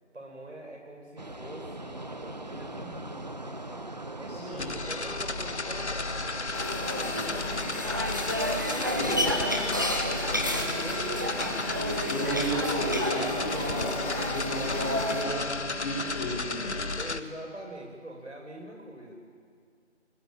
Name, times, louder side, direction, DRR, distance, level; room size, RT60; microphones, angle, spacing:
voice 1, 0.1-7.5 8.6-10.0 10.3-11.7 12.3-12.8 17.0-19.1, right 1 dB, 80° right, 3 dB, 7.6 m, -43 dB
sound 1, 1.2-13.8, right 2 dB, 35° right, 1.0 m, -42 dB
voice 2, 4.3-4.7 9.0-9.2 12.0-16.8, equal, 10° left, -7 dB, 3.1 m, -33 dB
sound 2, 4.5-17.2, left 3 dB, 70° left, 1.5 m, -33 dB
sound 3, 6.5-15.2, equal, 15° right, 1.2 m, -31 dB
25.0 x 20.5 x 9.2 m, 2.1 s
figure-of-eight pair, 175°, 35 cm